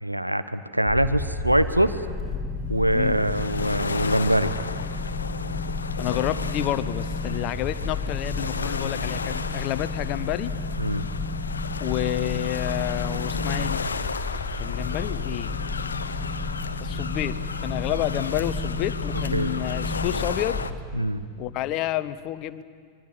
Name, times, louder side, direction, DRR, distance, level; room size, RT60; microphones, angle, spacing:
voice 1, 0.0-2.0 2.7-4.5 10.8-11.0 19.1-19.5 20.9-21.2, right 1 dB, 90° right, 11 dB, 1.0 m, -23 dB
sound 1, 0.9-20.6, left 3 dB, ahead, 5.2 m, -31 dB
sound 2, 2.9-20.7, left 5 dB, 75° left, 0.8 m, -34 dB
voice 2, 6.0-10.5 11.8-13.8 14.6-15.6 16.8-20.6 21.4-22.6, left 14 dB, 40° left, 15 dB, 0.9 m, -29 dB
25.0 x 22.5 x 7.6 m, 2.1 s
figure-of-eight pair, 90°, 0 cm